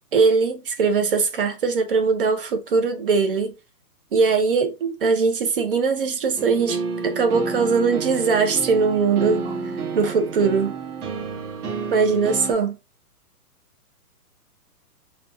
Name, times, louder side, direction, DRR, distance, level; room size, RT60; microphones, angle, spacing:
voice 1, 0.1-3.5 4.1-9.6 9.9-10.7 11.9-12.7, right 5 dB, 35° right, 0.7 m, -21 dB
sound 1, 6.3-12.5, right 5 dB, 65° right, 2.1 m, -30 dB
4.4 x 2.4 x 3.7 m
hypercardioid pair, 165°, 47 cm